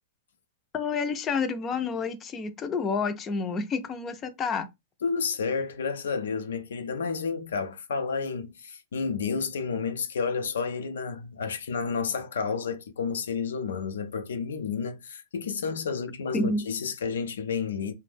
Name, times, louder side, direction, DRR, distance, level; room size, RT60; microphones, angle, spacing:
voice 1, 0.7-4.7 16.3-16.6, left 4 dB, 25° left, 0.4 m, -29 dB
voice 2, 5.0-17.9, left 5 dB, 90° left, 0.5 m, -31 dB
2.5 x 2.1 x 3.4 m
hypercardioid pair, 135°, 0 cm